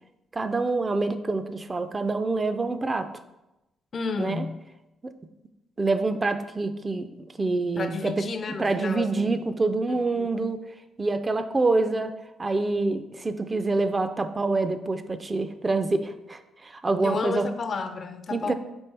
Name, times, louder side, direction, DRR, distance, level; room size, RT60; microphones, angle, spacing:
voice 1, 0.3-3.1 4.2-4.4 5.0-5.1 5.8-7.1 7.4-8.1 8.6-10.6 11.0-12.1 12.4-17.5 18.3-18.5, right 3 dB, 25° right, 9 dB, 0.3 m, -26 dB
voice 2, 3.9-4.6 7.8-9.4 10.2-10.3 17.0-18.5, left 4 dB, 45° left, 9 dB, 0.4 m, -31 dB
4.4 x 3.4 x 3.3 m, 0.94 s
cardioid pair, 90°, 0 cm